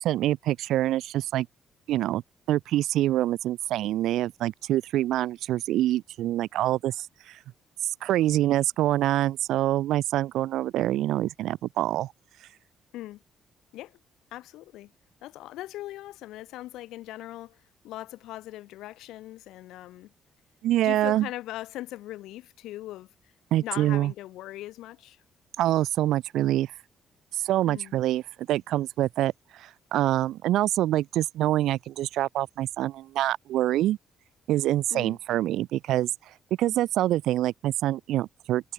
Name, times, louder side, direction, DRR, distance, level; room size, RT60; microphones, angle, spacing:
voice 1, 0.0-1.5 1.9-2.2 2.5-7.4 7.8-12.1 20.6-21.3 23.5-24.1 25.6-26.7 27.4-28.2 28.5-29.3 29.6-34.0 34.5-36.1 36.6-38.7, right 14 dB, 85° right, 0.8 m, -25 dB
voice 2, 14.3-14.9 15.2-20.1 20.8-23.1 23.6-25.2 27.6-27.9 34.9-35.2, left 15 dB, 90° left, 1.6 m, -40 dB
cardioid pair, 90°, 0 cm